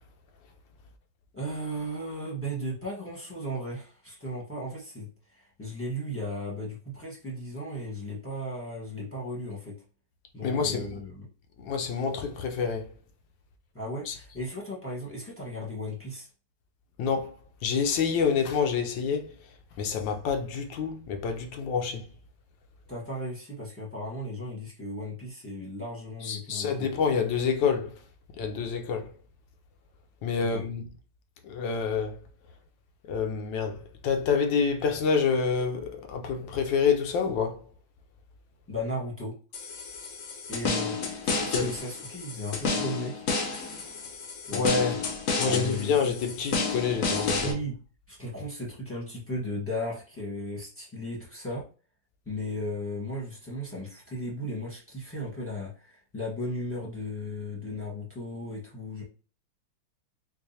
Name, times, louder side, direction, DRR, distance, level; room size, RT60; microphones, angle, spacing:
voice 1, 1.3-9.8 10.3-11.3 13.7-16.3 22.9-26.9 30.5-30.6 38.7-39.4 40.5-41.0 41.2-43.3 44.4-44.7 45.4-46.0 47.4-47.8 48.1-51.6 52.2-59.0, equal, 10° left, 0.9 m, -36 dB
voice 2, 10.4-11.0 11.6-12.9 14.1-14.2 17.0-17.3 17.6-19.3 19.8-22.0 26.2-28.0 28.4-29.1 30.2-30.9 31.4-32.2 33.1-37.6 41.5-41.7 44.5-45.1 45.4-47.6, left 6 dB, 75° left, 1.3 m, -27 dB
sound 1, 39.5-47.5, left 4 dB, 60° left, 0.9 m, -31 dB
4.6 x 2.5 x 2.7 m
omnidirectional pair, 2.1 m